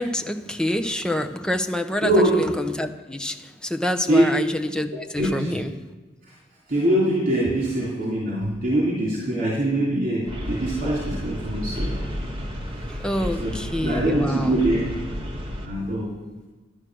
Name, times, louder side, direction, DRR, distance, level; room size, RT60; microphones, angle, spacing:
voice 1, 0.0-5.7 12.9-14.6, left 1 dB, 5° left, 5 dB, 0.9 m, -27 dB
voice 2, 2.0-2.4 4.1-4.2 5.2-5.5 6.7-12.0 13.4-13.5 13.8-14.9 15.6-16.1, right 1 dB, 50° right, -6 dB, 3.2 m, -23 dB
sound 1, 10.3-15.7, equal, 30° right, 1.9 m, -32 dB
12.5 x 10.5 x 6.3 m, 1.3 s
head